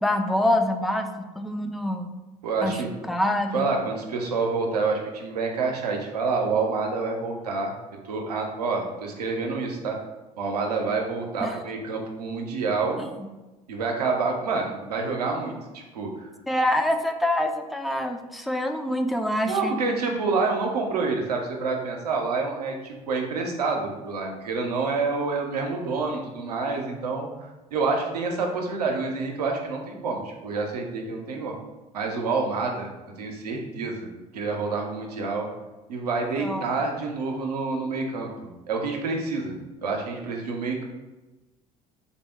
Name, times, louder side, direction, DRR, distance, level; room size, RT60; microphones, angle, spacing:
voice 1, 0.0-2.1 2.6-2.8 3.1-3.7 11.4-11.6 13.0-13.3 16.5-19.9 36.4-36.6, left 1 dB, ahead, 6 dB, 0.3 m, -26 dB
voice 2, 2.4-2.9 3.5-7.7 8.0-10.0 10.4-13.0 13.7-16.3 19.5-31.5 31.9-32.9 33.2-34.1 34.3-35.5 35.9-39.5 39.8-40.8, right 4 dB, 90° right, 2 dB, 0.5 m, -28 dB
3.8 x 2.0 x 3.4 m, 1.1 s
hypercardioid pair, 60°, 20 cm